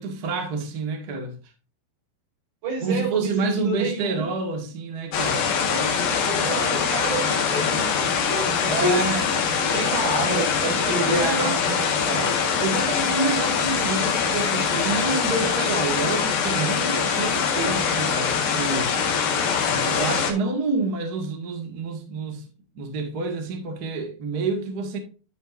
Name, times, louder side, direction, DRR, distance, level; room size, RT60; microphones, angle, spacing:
voice 1, 0.0-1.4 2.8-5.5 8.7-9.3 10.8-11.6 12.6-18.9 19.7-25.0, right 3 dB, 50° right, 1.1 m, -28 dB
voice 2, 2.6-4.3 5.7-9.2 9.6-12.4, right 2 dB, 75° right, 6.6 m, -29 dB
sound 1, 5.1-20.3, left 6 dB, 65° left, 3.2 m, -23 dB
13.0 x 5.6 x 2.6 m
omnidirectional pair, 5.0 m